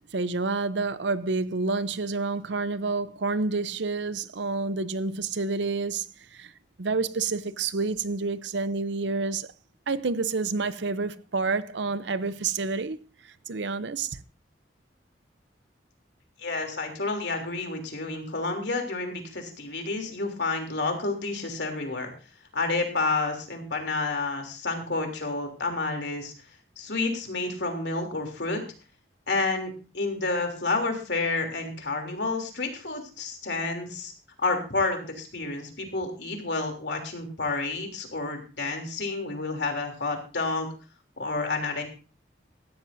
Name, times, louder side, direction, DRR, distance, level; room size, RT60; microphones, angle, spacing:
voice 1, 0.1-6.5 6.8-9.5 9.9-13.0 13.2-14.2, right 3 dB, 70° right, 0.7 m, -29 dB
voice 2, 16.4-22.1 22.5-26.3 26.8-28.6 29.3-34.1 34.4-40.7 41.2-41.8, left 3 dB, 65° left, 3.2 m, -30 dB
16.5 x 13.0 x 2.7 m
head